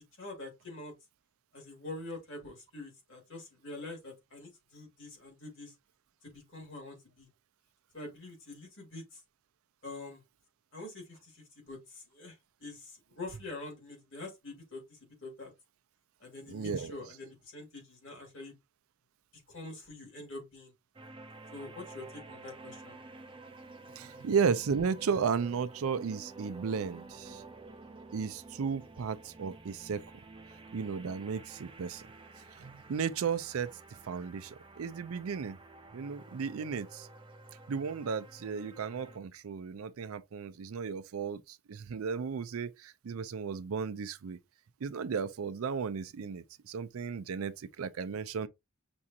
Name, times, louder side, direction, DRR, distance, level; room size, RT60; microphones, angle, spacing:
voice 1, 0.2-0.9 1.5-5.7 6.2-7.3 7.9-9.2 9.8-10.2 10.7-15.5 16.2-18.6 19.5-20.7 21.5-23.0, left 2 dB, 60° left, 2.1 m, -45 dB
voice 2, 16.5-16.9 24.0-27.4 28.1-30.0 30.7-32.0 32.6-33.7 34.1-35.6 35.9-37.1 37.7-44.4 44.8-48.5, right 6 dB, 80° right, 0.4 m, -34 dB
sound 1, 20.9-39.2, right 3 dB, 25° right, 0.4 m, -51 dB
6.1 x 2.4 x 2.7 m
head